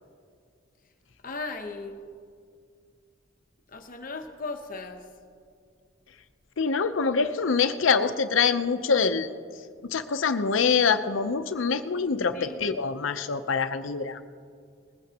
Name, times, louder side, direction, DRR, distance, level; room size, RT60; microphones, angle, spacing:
voice 1, 1.2-2.0 3.7-5.0 12.3-12.6, left 3 dB, 45° left, 5 dB, 0.9 m, -37 dB
voice 2, 6.6-9.3 9.8-14.2, left 5 dB, 85° left, 10 dB, 0.6 m, -25 dB
20.0 x 15.5 x 2.9 m, 2.2 s
head